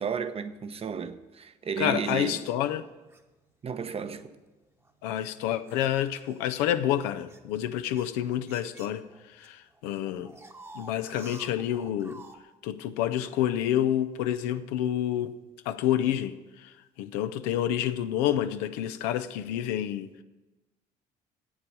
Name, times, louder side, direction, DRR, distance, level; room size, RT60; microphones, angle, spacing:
voice 1, 0.0-2.5 3.6-4.4, right 5 dB, 40° right, 0.9 m, -33 dB
voice 2, 1.8-2.8 5.0-10.3 10.7-12.2 12.6-15.4 15.6-20.2, left 11 dB, 80° left, 0.5 m, -29 dB
sound 1, 2.0-3.2 4.0-4.2 4.8-9.5 9.7-12.4, right 2 dB, 15° right, 1.1 m, -51 dB
8.2 x 7.2 x 8.7 m
hypercardioid pair, 65°, 16 cm